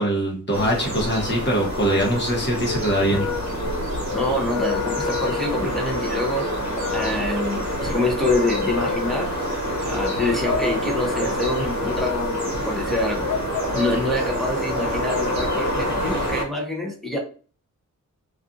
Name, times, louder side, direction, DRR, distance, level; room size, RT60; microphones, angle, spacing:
voice 1, 0.0-3.2, right 1 dB, 35° left, -1 dB, 0.9 m, -22 dB
sound 1, 0.5-16.4, right 1 dB, 60° right, 0.8 m, -27 dB
sound 2, 2.6-16.3, left 5 dB, 75° left, 0.5 m, -31 dB
voice 2, 4.1-6.5 6.9-9.3 9.8-13.3 13.7-17.2, left 2 dB, ahead, -1 dB, 0.6 m, -26 dB
2.6 x 2.4 x 2.4 m, 0.39 s
wide cardioid pair, 140°, 32 cm